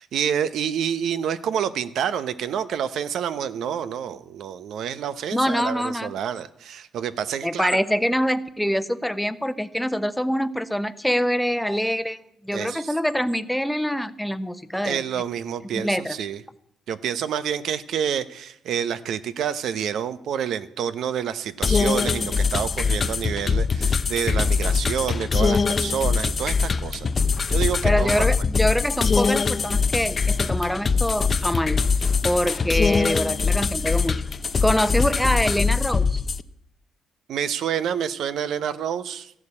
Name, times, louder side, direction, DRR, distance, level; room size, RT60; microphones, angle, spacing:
voice 1, 0.0-7.7 12.5-12.9 14.8-16.4 16.9-27.1 27.5-28.3 37.3-39.3, right 8 dB, 75° right, 12 dB, 0.9 m, -28 dB
voice 2, 5.3-6.1 7.4-12.2 12.4-15.0 15.7-16.2 27.8-31.8 32.2-34.2 34.6-36.2, equal, 5° left, 12 dB, 0.9 m, -24 dB
sound 1, 21.6-36.4, left 5 dB, 40° left, 0.7 m, -23 dB
14.5 x 11.0 x 8.7 m, 0.76 s
cardioid pair, 90°, 0 cm